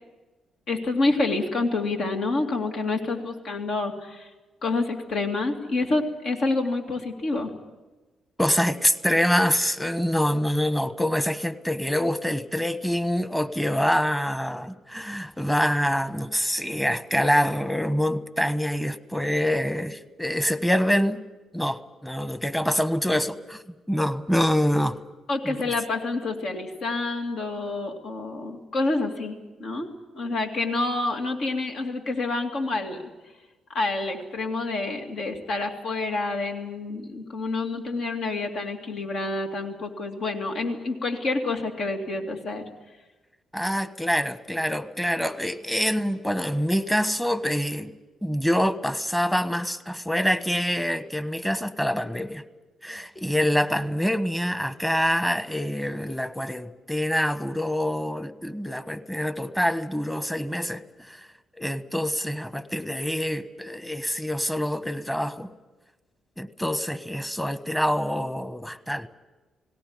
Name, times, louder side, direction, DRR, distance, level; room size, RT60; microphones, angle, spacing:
voice 1, 0.7-4.3 4.6-7.5 25.3-29.9 30.1-33.0 33.7-42.6, left 3 dB, 65° left, 3 dB, 2.4 m, -28 dB
voice 2, 8.4-21.2 21.5-23.6 23.9-25.0 25.4-25.7 43.5-47.9 48.2-52.4 52.8-61.3 61.6-65.5 66.4-69.1, equal, 5° left, 12 dB, 1.3 m, -25 dB
18.5 x 17.5 x 9.5 m, 1.2 s
hypercardioid pair, 50°, 0 cm